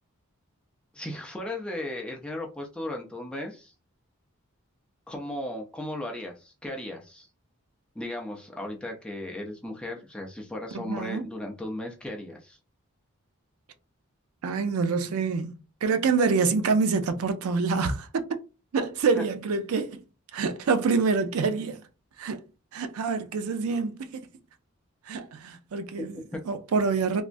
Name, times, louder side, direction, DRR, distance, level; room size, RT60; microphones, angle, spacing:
voice 1, 0.9-3.7 5.1-7.3 7.9-12.6 26.0-26.1 26.3-26.4, left 1 dB, 5° left, 0.5 m, -36 dB
voice 2, 10.7-11.3 14.4-18.2 18.7-20.0 20.3-21.8 22.2-22.4 22.7-24.2 25.1-27.2, right 4 dB, 80° right, 0.4 m, -26 dB
3.4 x 2.0 x 2.5 m
head